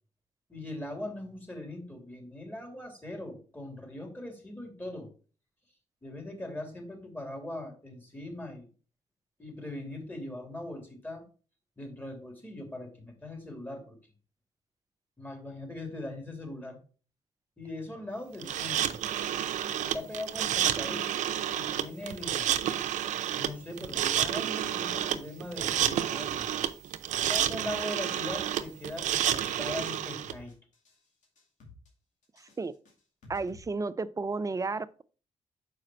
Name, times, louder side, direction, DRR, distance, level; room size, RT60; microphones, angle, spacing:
voice 1, 0.5-5.1 6.0-8.7 9.4-11.2 11.8-14.0 15.2-16.8 17.6-19.0 19.8-21.3 21.5-22.5 23.4-26.5 27.3-30.5, left 1 dB, 15° left, 2.9 m, -40 dB
sound 1, 18.4-30.3, right 11 dB, 85° right, 0.5 m, -30 dB
sound 2, 25.6-25.9 26.2-27.0 27.2-27.9 28.2-28.9 29.2-29.9 30.2-31.0 31.2-31.9 32.2-33.6, left 3 dB, 80° left, 2.2 m, -53 dB
voice 2, 33.3-35.0, right 3 dB, 25° right, 0.5 m, -32 dB
6.5 x 5.0 x 4.4 m
cardioid pair, 70°, 12 cm